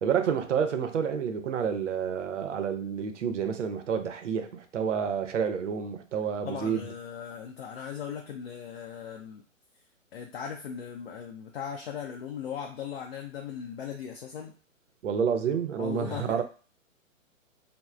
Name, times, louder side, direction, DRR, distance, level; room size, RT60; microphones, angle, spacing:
voice 1, 0.0-6.9 15.0-16.4, right 7 dB, 60° right, 0.6 m, -29 dB
voice 2, 6.4-9.4 10.1-14.5 15.8-16.4, left 8 dB, 50° left, 0.5 m, -38 dB
3.0 x 2.0 x 2.4 m
figure-of-eight pair, 125°, 40 cm